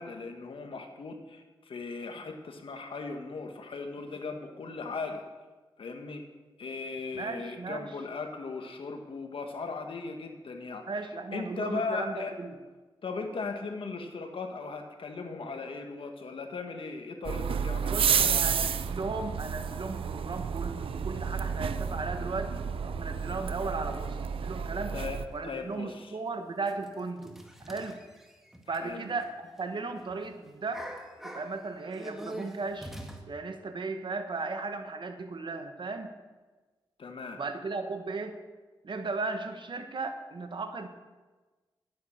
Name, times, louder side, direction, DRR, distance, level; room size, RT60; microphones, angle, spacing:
voice 1, 0.0-5.2 5.8-6.2 6.6-10.8 11.3-12.4 13.0-18.4 24.9-26.2 28.7-29.1 37.0-37.4, left 4 dB, 75° left, 5 dB, 1.5 m, -38 dB
voice 2, 7.1-7.9 10.9-12.5 17.9-25.0 25.3-27.3 27.7-28.0 28.7-31.0 31.2-32.9 33.3-36.1 37.3-38.4 38.8-40.9, right 3 dB, 60° right, 7 dB, 1.4 m, -36 dB
sound 1, 17.3-25.3, right 7 dB, 85° right, 0.6 m, -31 dB
sound 2, 25.3-25.4 26.0-26.1 26.7-29.6 29.9-30.1 30.5-33.2, right 1 dB, 5° right, 1.9 m, -44 dB
11.0 x 9.3 x 6.5 m, 1.3 s
cardioid pair, 55°, 9 cm